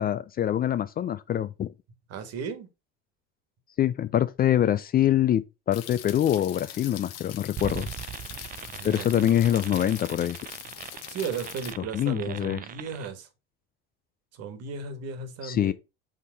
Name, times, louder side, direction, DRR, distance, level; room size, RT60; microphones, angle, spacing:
voice 1, 0.0-1.7 3.8-7.9 8.8-10.4 11.8-12.6 15.4-15.7, left 11 dB, 30° left, 0.4 m, -25 dB
voice 2, 2.1-2.7 8.7-9.3 11.1-13.3 14.3-15.7, right 6 dB, 55° right, 1.6 m, -35 dB
sound 1, 5.7-11.7, left 11 dB, 55° left, 1.0 m, -42 dB
sound 2, 7.6-13.1, right 10 dB, 30° right, 0.5 m, -40 dB
6.5 x 3.7 x 4.0 m
supercardioid pair, 85°, 30 cm